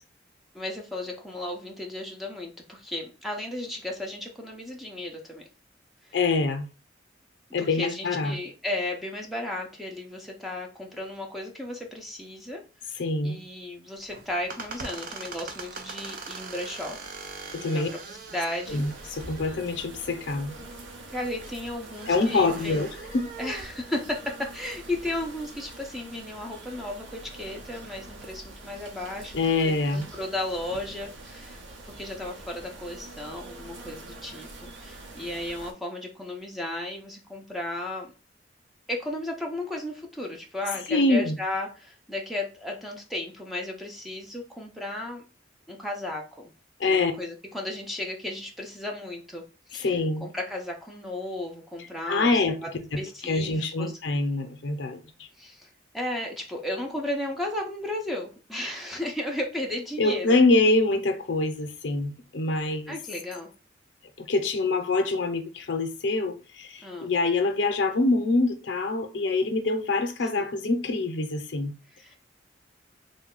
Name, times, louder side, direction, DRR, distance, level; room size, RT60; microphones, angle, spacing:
voice 1, 0.5-5.5 6.0-6.2 7.6-17.0 17.6-18.8 21.1-22.8 23.4-29.4 29.6-34.5 34.8-38.1 38.9-45.2 45.7-46.5 46.9-52.4 53.0-53.9 55.3-60.4 62.9-63.5 66.8-67.1 70.2-70.5 71.9-72.2, left 1 dB, ahead, 0.5 m, -34 dB
voice 2, 6.1-6.7 7.5-8.4 13.0-13.4 17.5-17.9 18.7-20.6 22.1-22.9 23.1-23.3 29.3-30.0 40.9-41.4 46.8-47.1 49.7-50.3 52.1-52.6 52.9-55.0 60.0-62.9 64.2-71.7, left 3 dB, 75° left, 0.6 m, -25 dB
sound 1, 14.0-23.7, right 4 dB, 50° right, 0.5 m, -42 dB
sound 2, 18.6-35.7, right 2 dB, 85° right, 0.8 m, -45 dB
3.2 x 2.2 x 3.7 m
head